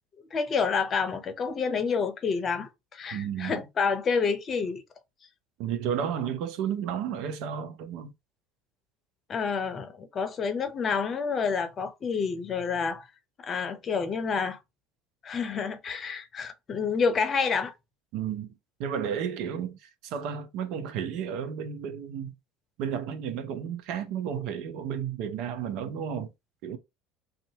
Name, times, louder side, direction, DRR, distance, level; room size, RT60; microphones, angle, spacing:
voice 1, 0.3-4.8 9.3-13.1 13.4-14.6 15.2-17.7, left 5 dB, 40° left, 0.6 m, -28 dB
voice 2, 3.1-3.6 5.6-8.1 18.1-22.3 22.8-26.3 26.6-26.8, right 8 dB, 60° right, 0.5 m, -32 dB
2.6 x 2.4 x 2.7 m
hypercardioid pair, 70°, 0 cm